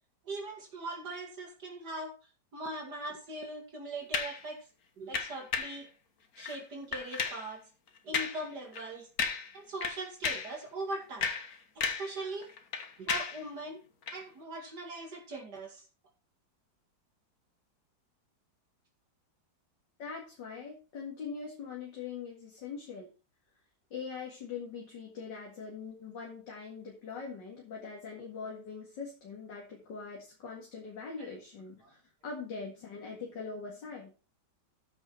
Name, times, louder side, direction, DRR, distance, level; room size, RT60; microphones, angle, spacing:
voice 1, 0.2-2.1 2.5-4.6 5.0-5.9 6.4-7.6 8.0-9.1 9.5-11.3 12.0-12.5 13.0-13.8 14.1-15.9 31.2-31.3 31.8-31.9, right 2 dB, 60° right, 1 dB, 2.7 m, -40 dB
sound 1, 4.1-4.4 5.1-5.8 6.4-6.6 6.9-7.5 8.1-8.4 8.7-8.9 9.2-9.6 9.8-10.6 11.0-12.2 12.4-13.4 14.0-14.2, left 5 dB, 55° left, 1.6 m, -34 dB
voice 2, 20.0-23.1 23.9-34.1, left 5 dB, 70° left, -2 dB, 2.7 m, -42 dB
13.5 x 5.6 x 4.6 m, 0.35 s
omnidirectional pair, 2.0 m